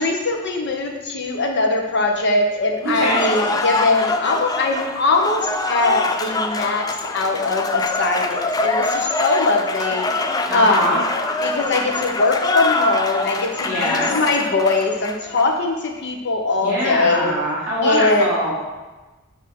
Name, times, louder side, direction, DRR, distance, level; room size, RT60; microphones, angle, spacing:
voice 1, 0.0-6.8 7.1-11.0 11.4-17.3 17.8-18.3, left 3 dB, 55° left, 2 dB, 0.8 m, -21 dB
Cheering / Applause, 2.8-15.4, left 3 dB, 20° left, 0.3 m, -24 dB
voice 2, 2.8-3.2 10.4-11.0 13.6-14.1 16.6-18.5, equal, 10° right, -8 dB, 2.0 m, -23 dB
7.6 x 2.7 x 5.2 m, 1.2 s
head